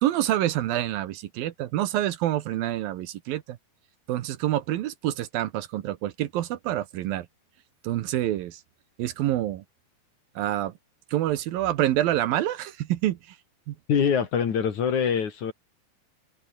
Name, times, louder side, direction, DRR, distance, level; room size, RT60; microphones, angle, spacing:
voice 1, 0.0-3.6 4.1-7.3 7.8-8.6 9.0-9.6 10.4-10.7 11.1-13.4 13.7-13.8, right 13 dB, 75° right, 2.7 m, -27 dB
voice 2, 13.9-15.5, left 7 dB, 55° left, 3.5 m, -24 dB
omnidirectional pair, 4.4 m